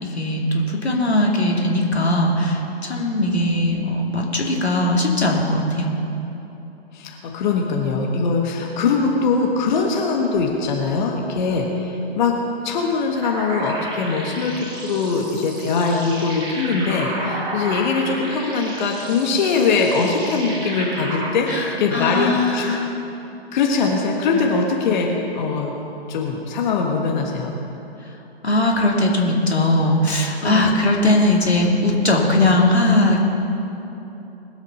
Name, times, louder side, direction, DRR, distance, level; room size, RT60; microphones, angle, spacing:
voice 1, 0.0-6.0 21.5-22.9 28.4-33.2, left 1 dB, 80° left, -1 dB, 2.5 m, -19 dB
voice 2, 6.9-12.4 12.6-21.5 21.8-22.7 23.5-25.7 26.1-27.5 30.4-30.8, left 4 dB, 45° left, 0 dB, 1.5 m, -22 dB
sound 1, 13.2-21.3, right 1 dB, 15° right, 1.8 m, -32 dB
20.5 x 8.1 x 5.6 m, 3.0 s
figure-of-eight pair, 120°, 32 cm